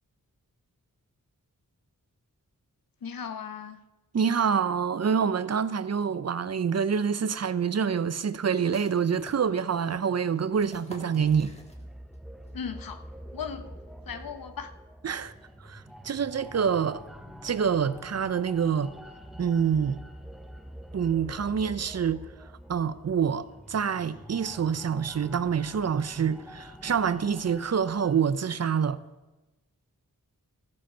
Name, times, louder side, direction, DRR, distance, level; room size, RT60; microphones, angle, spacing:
voice 1, 3.0-3.8 12.5-13.0 13.3-13.7 14.1-14.7, left 7 dB, 80° left, 0.9 m, -37 dB
voice 2, 4.1-11.5 15.0-15.3 15.7-17.0 17.4-18.9 19.4-20.0 20.9-22.2 22.7-29.0, right 7 dB, 50° right, 0.5 m, -26 dB
sound 1, 8.5-12.2 12.4-12.5 13.0-13.4, left 1 dB, 20° left, 1.4 m, -50 dB
sound 2, 11.2-28.2, equal, ahead, 0.6 m, -46 dB
14.0 x 7.6 x 5.6 m
wide cardioid pair, 110°, 34 cm